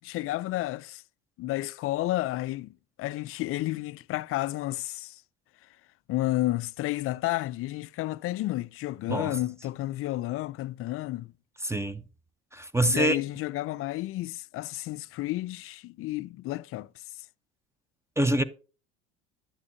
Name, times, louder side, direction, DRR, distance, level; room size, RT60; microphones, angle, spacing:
voice 1, 0.0-1.0 1.4-5.2 6.1-11.3 12.8-17.0, left 16 dB, 40° left, 0.4 m, -31 dB
voice 2, 11.6-12.0 12.5-13.2 18.2-18.4, right 1 dB, 10° right, 0.6 m, -25 dB
10.5 x 7.2 x 2.6 m
hypercardioid pair, 75°, 35 cm